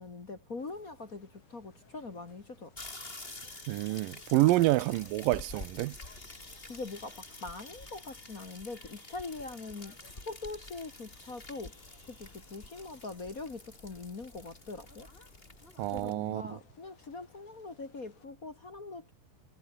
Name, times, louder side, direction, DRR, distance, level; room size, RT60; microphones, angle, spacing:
voice 1, 0.0-2.7 6.7-11.7 12.1-15.1 15.9-19.1, left 3 dB, 35° left, 1.5 m, -43 dB
sound 1, 0.6-18.3, left 5 dB, 60° left, 6.4 m, -64 dB
sound 2, 2.8-16.1, left 2 dB, 15° left, 4.0 m, -48 dB
voice 2, 3.7-6.0 15.8-16.6, right 18 dB, 80° right, 2.4 m, -28 dB
omnidirectional pair, 4.0 m